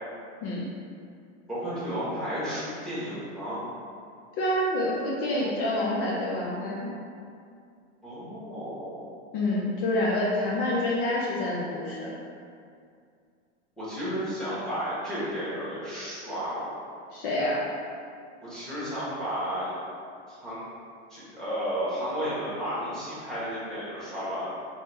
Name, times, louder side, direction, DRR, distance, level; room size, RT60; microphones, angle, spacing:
voice 1, 1.5-3.6 8.0-9.0 13.8-16.7 18.4-19.7 20.3-20.6 21.1-24.5, equal, ahead, -12 dB, 1.2 m, -32 dB
voice 2, 4.4-6.9 9.3-12.1 17.1-17.6, left 1 dB, 50° left, -4 dB, 0.7 m, -27 dB
4.0 x 3.3 x 3.4 m, 2.3 s
supercardioid pair, 160°, 36 cm